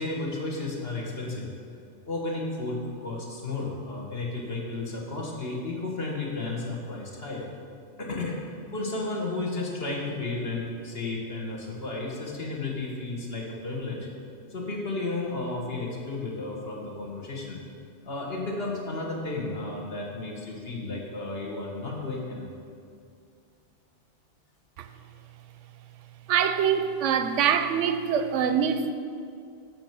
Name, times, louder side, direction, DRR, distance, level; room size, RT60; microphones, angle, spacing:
voice 1, 0.0-1.5 2.0-7.5 8.0-8.4 8.7-14.1 14.5-17.6 18.0-22.5, left 2 dB, 55° left, 1.6 m, -33 dB
voice 2, 26.3-28.9, right 7 dB, 85° right, 0.9 m, -24 dB
8.7 x 4.5 x 7.4 m
omnidirectional pair, 1.2 m